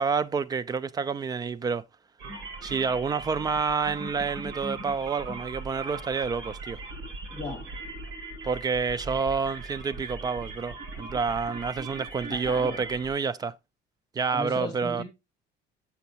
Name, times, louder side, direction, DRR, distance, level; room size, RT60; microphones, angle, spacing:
voice 1, 0.0-1.8 2.6-6.8 8.4-13.6 14.1-15.0, right 5 dB, 20° right, 0.3 m, -28 dB
sound 1, 2.2-13.1, right 3 dB, 65° right, 5.2 m, -39 dB
voice 2, 7.3-7.6 12.3-12.9 14.3-15.0, left 2 dB, 20° left, 2.6 m, -36 dB
7.0 x 6.9 x 2.7 m
cardioid pair, 160°, 20 cm